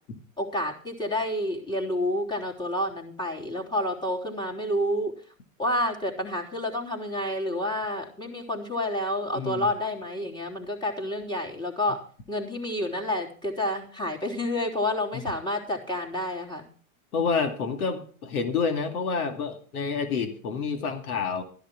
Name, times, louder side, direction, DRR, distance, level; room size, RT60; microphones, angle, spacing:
voice 1, 0.4-5.1 5.6-12.0 12.3-16.7, left 1 dB, 10° left, 1 dB, 3.4 m, -29 dB
voice 2, 9.3-9.7 15.1-15.2 17.1-21.4, left 5 dB, 90° left, 6 dB, 2.4 m, -28 dB
13.0 x 10.5 x 4.7 m, 0.44 s
hypercardioid pair, 115°, 42 cm